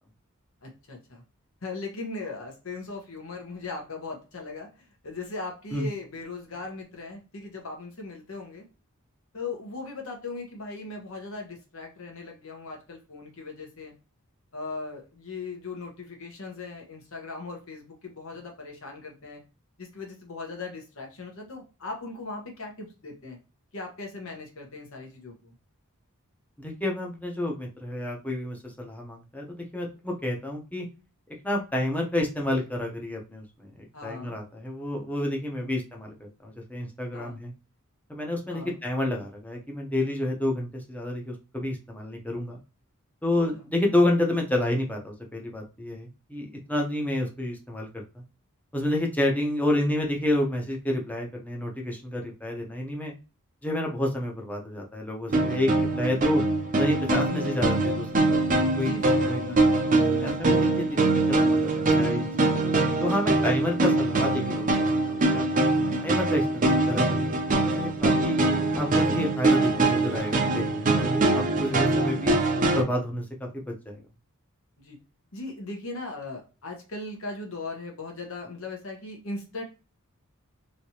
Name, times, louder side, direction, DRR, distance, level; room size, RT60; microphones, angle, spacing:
voice 1, 0.6-1.2 1.6-8.6 9.3-13.9 14.5-19.4 19.8-23.4 23.7-25.5 33.9-34.4 35.5-35.7 37.1-37.4 38.5-38.8 57.3-57.5 58.7-59.7 71.5-71.9 74.8-75.0 75.3-79.6, left 3 dB, 65° left, 1 dB, 1.1 m, -38 dB
voice 2, 26.6-30.9 31.4-37.5 38.1-42.6 43.2-48.0 48.7-53.1 53.6-56.4 56.8-58.9 59.2-59.6 60.1-64.7 65.1-65.4 66.0-67.4 67.6-68.4 68.8-72.4 72.7-73.2 73.5-74.0, left 1 dB, 5° left, 0 dB, 0.8 m, -29 dB
sound 1, 55.3-72.8, right 2 dB, 35° right, 0.6 m, -23 dB
3.2 x 2.8 x 2.8 m, 0.32 s
head